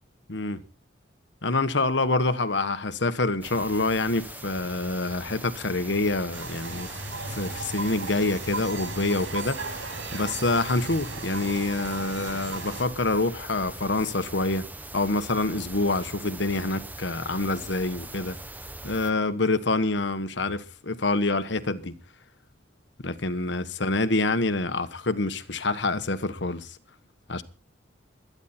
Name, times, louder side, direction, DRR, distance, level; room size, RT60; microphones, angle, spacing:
voice 1, 0.3-0.6 1.4-6.9 7.3-14.7 14.9-18.4 18.8-21.9 23.0-26.8 27.3-27.4, left 2 dB, 65° left, 1.3 m, -26 dB
sound 1, 3.4-19.1, right 2 dB, 10° right, 0.9 m, -42 dB
sound 2, 6.3-12.8, right 3 dB, 85° right, 5.9 m, -36 dB
22.0 x 10.5 x 4.3 m
head